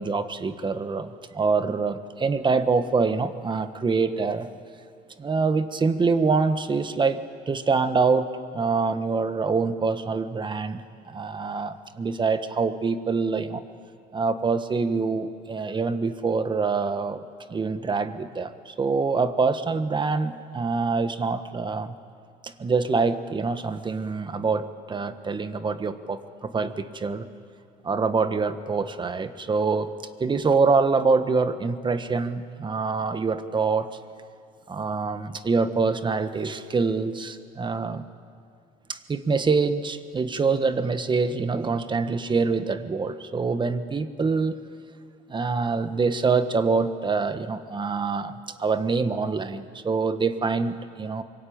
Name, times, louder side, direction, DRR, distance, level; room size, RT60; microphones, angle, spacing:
voice 1, 0.0-4.5 5.2-7.2 7.5-8.3 8.5-13.6 14.1-17.2 17.5-21.9 22.4-27.3 27.8-29.9 30.2-33.9 34.7-38.0 38.9-44.6 45.3-51.2, right 4 dB, 25° right, 10 dB, 1.4 m, -25 dB
25.0 x 23.0 x 8.8 m, 2.3 s
cardioid pair, 110°, 17 cm